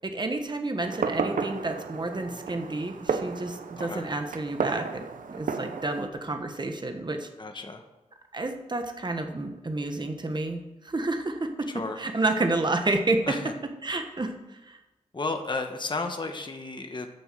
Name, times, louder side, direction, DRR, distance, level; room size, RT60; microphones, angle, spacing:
voice 1, 0.0-5.0 5.3-7.3 8.3-11.7 12.0-13.4 13.8-14.8, right 2 dB, 35° right, 5 dB, 1.4 m, -30 dB
Fireworks, 0.8-6.1, right 5 dB, 85° right, 0.8 m, -33 dB
voice 2, 7.4-7.8 11.7-12.0 13.3-13.5 15.1-17.1, left 3 dB, 35° left, 5 dB, 1.2 m, -33 dB
10.0 x 7.0 x 7.7 m, 1.0 s
wide cardioid pair, 95°, 13 cm